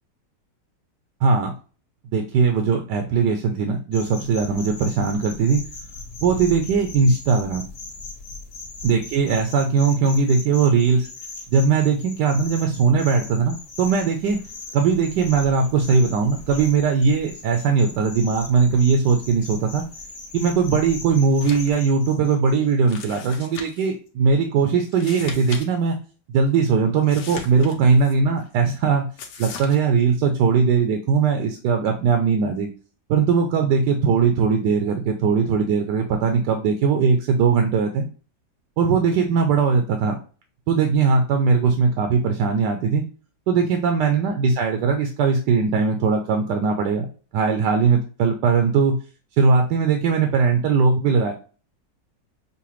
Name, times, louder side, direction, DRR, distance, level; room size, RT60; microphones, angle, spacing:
voice 1, 1.2-1.5 2.1-5.6 6.2-7.6 8.8-11.1 11.5-14.4 14.7-19.8 20.3-26.0 26.3-29.1 29.4-32.7 33.1-38.1 38.8-40.2 40.7-43.0 43.5-47.1 47.3-49.0 49.4-51.3, right 5 dB, 75° right, 4 dB, 1.2 m, -20 dB
sound 1, 3.9-22.7, left 3 dB, 45° left, 0.9 m, -39 dB
sound 2, 21.3-21.8 22.1-22.2 22.9-23.9 24.9-25.7 25.9-26.0 27.0-28.1 29.2-29.8, left 5 dB, 75° left, 1.3 m, -38 dB
5.7 x 2.2 x 3.0 m, 0.37 s
omnidirectional pair, 1.9 m